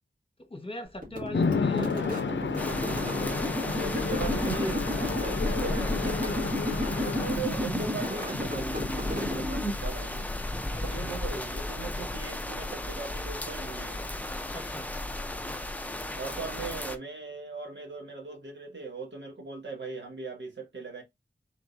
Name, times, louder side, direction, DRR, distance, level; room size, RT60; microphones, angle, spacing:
voice 1, 0.5-2.0 10.7-11.1 14.5-14.9, left 1 dB, 30° left, 1.2 m, -40 dB
sound 1, 1.0-10.0, left 1 dB, 45° right, 2.2 m, -33 dB
Chatter / Traffic noise roadway noise / Train, 1.3-7.3, left 5 dB, 80° left, 0.6 m, -32 dB
sound 2, 2.6-17.0, left 1 dB, 10° left, 0.6 m, -34 dB
voice 2, 3.8-6.4 6.9-10.3 10.8-14.0 16.1-21.0, right 4 dB, 75° right, 1.6 m, -39 dB
4.4 x 3.8 x 2.6 m
wide cardioid pair, 70°, 19 cm